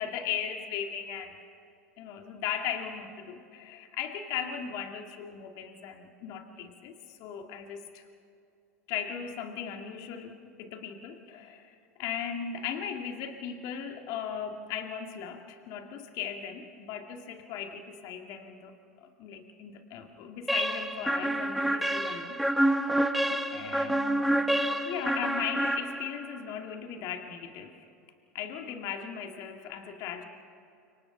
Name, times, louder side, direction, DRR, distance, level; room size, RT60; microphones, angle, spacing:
voice 1, 0.0-1.4 2.0-8.0 8.9-18.7 19.0-22.4 22.9-23.1 23.5-24.4 24.8-27.8 28.3-30.2, left 8 dB, 55° left, 4 dB, 2.1 m, -37 dB
sound 1, 20.5-26.3, right 1 dB, ahead, 1.4 m, -28 dB
29.5 x 26.5 x 3.9 m, 2.6 s
hypercardioid pair, 90°, 8 cm